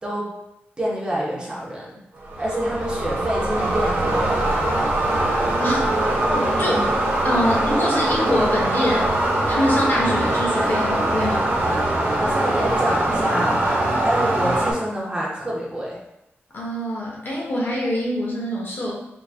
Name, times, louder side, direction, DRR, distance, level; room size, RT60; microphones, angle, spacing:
voice 1, 0.8-2.0 2.4-4.5 6.6-6.8 12.2-16.0, right 1 dB, 20° right, -5 dB, 0.9 m, -27 dB
sound 1, 2.2-14.7, right 1 dB, 65° right, 0.9 m, -22 dB
voice 2, 6.3-6.8 7.2-9.2 9.5-11.5 16.5-18.9, left 1 dB, 55° left, -3 dB, 0.9 m, -24 dB
3.5 x 2.9 x 2.2 m, 0.85 s
wide cardioid pair, 105°, 4 cm